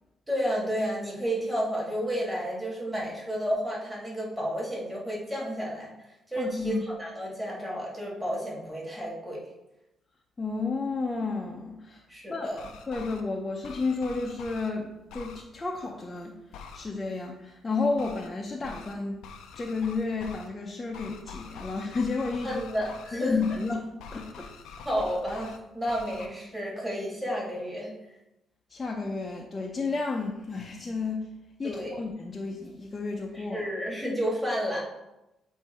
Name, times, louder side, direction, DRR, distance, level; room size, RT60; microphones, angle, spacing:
voice 1, 0.3-5.9 6.3-9.4 12.1-12.7 22.4-23.4 24.8-27.9 31.6-32.0 33.3-34.8, equal, 10° right, -4 dB, 2.2 m, -31 dB
voice 2, 6.4-6.8 10.4-12.0 12.3-12.5 12.9-16.4 16.7-19.2 19.6-22.6 23.1-24.5 28.7-31.3 31.6-33.7, left 3 dB, 25° left, -1 dB, 0.7 m, -31 dB
sound 1, 12.5-13.2 13.6-14.7 15.1-15.4 16.5-16.9 18.0-18.3 18.6-18.9 19.2-20.5 20.9-23.1 23.4-23.7 24.0-25.6 25.9-26.3, left 5 dB, 90° left, 0.6 m, -45 dB
7.9 x 2.7 x 4.4 m, 0.93 s
cardioid pair, 90°, 0 cm